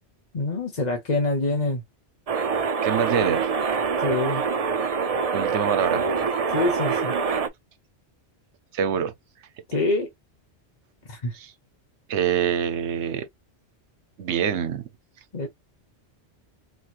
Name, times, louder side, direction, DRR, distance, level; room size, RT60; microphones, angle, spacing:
voice 1, 0.3-1.8 4.0-4.4 6.5-7.1 9.7-10.1 11.1-11.4 15.3-15.5, left 2 dB, 40° left, 1.0 m, -25 dB
sound 1, 2.3-7.5, right 5 dB, 50° right, 0.4 m, -25 dB
voice 2, 2.8-3.5 5.3-6.1 8.7-9.1 11.3-11.5 12.1-13.3 14.2-14.9, right 8 dB, 80° right, 1.0 m, -25 dB
4.3 x 3.1 x 2.4 m
omnidirectional pair, 1.2 m